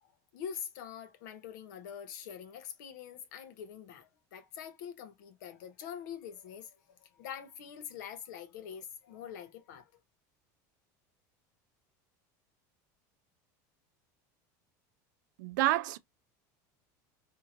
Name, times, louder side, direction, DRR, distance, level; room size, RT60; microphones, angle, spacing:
voice 1, 0.0-9.9, left 8 dB, 85° left, 0.7 m, -45 dB
voice 2, 15.4-16.0, right 16 dB, 85° right, 0.4 m, -28 dB
2.9 x 2.7 x 2.5 m
supercardioid pair, 135°, 9 cm